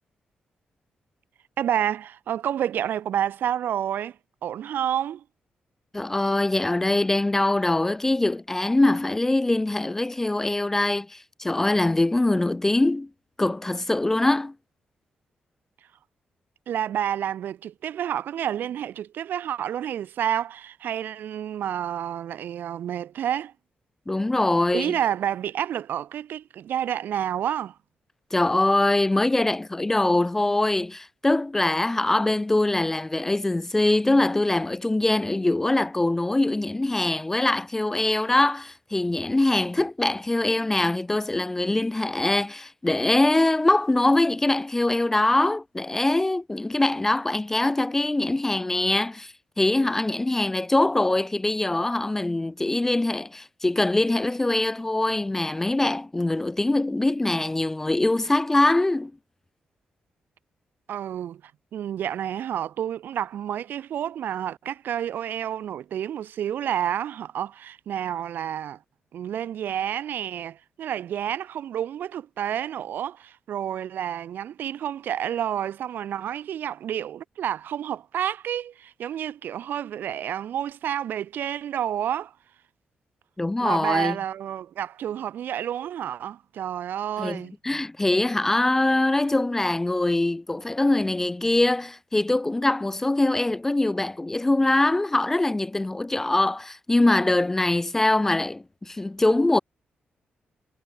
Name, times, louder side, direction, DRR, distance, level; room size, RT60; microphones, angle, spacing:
voice 1, 1.6-4.2 4.4-5.2 16.7-23.5 24.7-27.8 60.9-61.4 61.7-68.8 69.1-82.3 83.6-87.5, right 10 dB, 75° right, 0.8 m, -29 dB
voice 2, 5.9-13.1 13.4-14.5 24.1-24.9 28.3-59.1 83.4-84.2 87.2-99.6, left 2 dB, 10° left, 0.5 m, -23 dB
wide cardioid pair, 175°, 3 cm